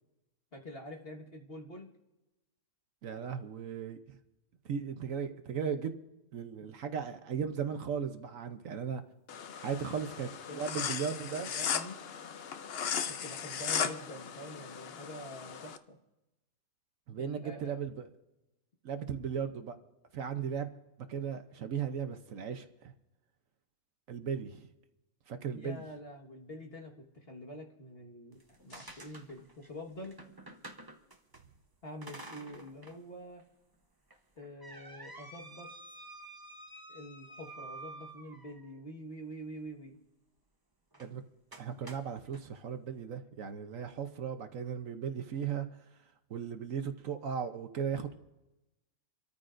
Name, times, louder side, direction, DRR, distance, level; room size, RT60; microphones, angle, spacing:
voice 1, 0.5-1.9 9.7-9.8 10.1-10.6 11.3-12.0 13.1-16.0 17.2-17.8 25.5-30.2 31.8-33.4 34.3-35.7 36.9-40.0, equal, 40° left, -1 dB, 1.7 m, -46 dB
voice 2, 3.0-4.0 4.6-5.9 6.3-9.0 9.6-11.5 17.1-18.1 18.8-19.8 20.1-20.7 21.1-22.9 24.1-24.7 25.3-25.8 41.0-41.2 41.6-45.7 46.3-48.2, right 7 dB, 65° right, 8 dB, 1.1 m, -36 dB
sound 1, 9.3-15.8, left 7 dB, 55° left, 0.7 m, -37 dB
sound 2, 28.1-30.4, equal, 75° left, 6.0 m, -63 dB
sound 3, 28.3-31.4 32.0-33.0 33.4-33.5 34.1-38.8 40.9-41.1 41.5-42.4, right 2 dB, 20° right, 0.8 m, -50 dB
28.0 x 13.5 x 2.6 m, 0.99 s
omnidirectional pair, 1.6 m